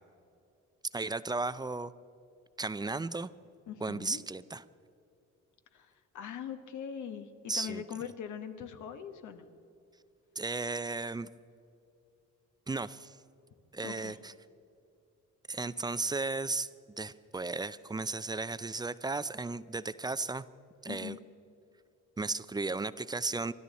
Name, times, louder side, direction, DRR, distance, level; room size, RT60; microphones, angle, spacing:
voice 1, 0.9-1.9 2.6-3.3 3.8-4.6 7.5-7.8 10.4-11.3 12.7-13.2 13.7-14.3 15.5-16.7 17.0-20.4 20.8-21.2 22.2-23.5, right 3 dB, 15° right, 15 dB, 0.4 m, -35 dB
voice 2, 3.7-4.2 5.7-9.5 13.8-14.2 20.9-21.2, left 8 dB, 75° left, 8 dB, 1.2 m, -42 dB
24.0 x 12.5 x 4.2 m, 2.6 s
cardioid pair, 90°, 30 cm